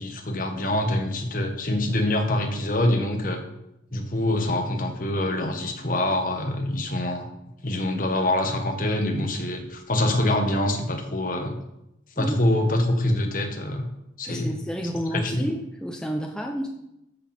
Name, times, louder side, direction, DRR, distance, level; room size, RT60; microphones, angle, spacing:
voice 1, 0.0-3.4 3.9-7.2 7.6-11.6 12.2-13.9 14.2-14.5 15.1-15.5, left 1 dB, 45° left, 3 dB, 1.5 m, -25 dB
voice 2, 14.3-16.7, equal, 5° left, 1 dB, 0.7 m, -30 dB
13.5 x 6.1 x 4.4 m, 0.86 s
head